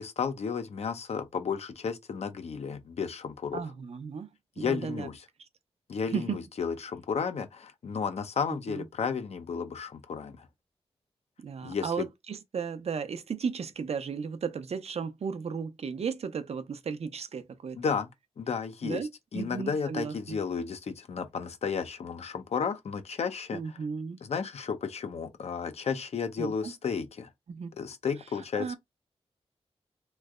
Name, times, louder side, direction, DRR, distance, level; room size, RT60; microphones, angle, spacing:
voice 1, 0.0-3.6 4.6-5.2 5.9-10.5 11.6-12.0 17.8-18.1 18.4-19.0 19.3-23.6 24.2-27.3 27.8-28.8, left 6 dB, 75° left, 0.6 m, -33 dB
voice 2, 3.5-4.3 4.6-5.1 6.1-6.4 8.7-8.9 11.4-17.8 18.8-20.4 23.5-24.2 26.4-26.7 27.5-27.7 28.5-28.8, right 6 dB, 70° right, 0.6 m, -35 dB
3.2 x 2.1 x 3.6 m
wide cardioid pair, 120°, 11 cm